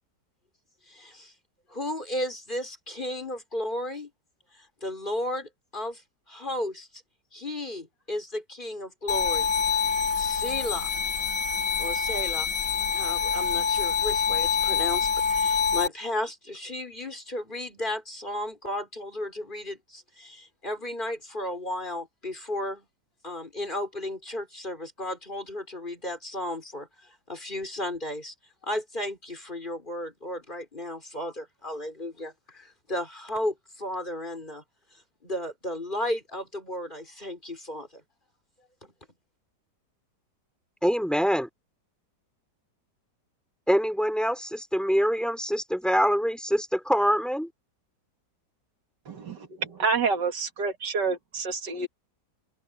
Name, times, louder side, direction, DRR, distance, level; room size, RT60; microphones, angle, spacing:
voice 1, 0.9-1.3 1.7-4.1 4.5-6.0 6.3-6.9 7.3-9.5 9.8-9.9 10.1-11.0 11.8-12.5 12.8-22.9 23.2-28.3 28.6-34.6 34.9-38.0 38.8-38.9, left 1 dB, 25° left, 5.0 m, -34 dB
sound 1, 9.1-15.9, left 6 dB, 90° left, 5.1 m, -26 dB
voice 2, 40.8-41.5 43.7-47.5, equal, ahead, 4.2 m, -24 dB
voice 3, 49.1-49.4 49.7-51.9, right 4 dB, 80° right, 2.7 m, -28 dB
omnidirectional pair, 1.8 m